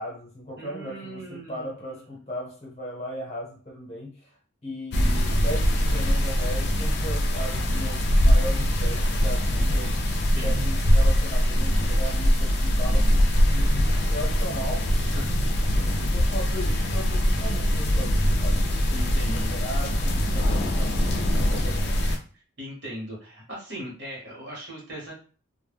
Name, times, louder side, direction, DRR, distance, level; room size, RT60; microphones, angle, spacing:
voice 1, 0.0-4.3 4.6-15.0 15.7-22.0, equal, 30° left, -2 dB, 0.8 m, -37 dB
voice 2, 0.6-2.0 5.5-5.8 10.3-10.5 15.1-15.2 18.9-19.5 22.6-25.1, equal, 55° right, -3 dB, 1.0 m, -39 dB
sound 1, 4.9-22.2, equal, 50° left, 0.4 m, -22 dB
2.1 x 2.1 x 3.3 m, 0.40 s
head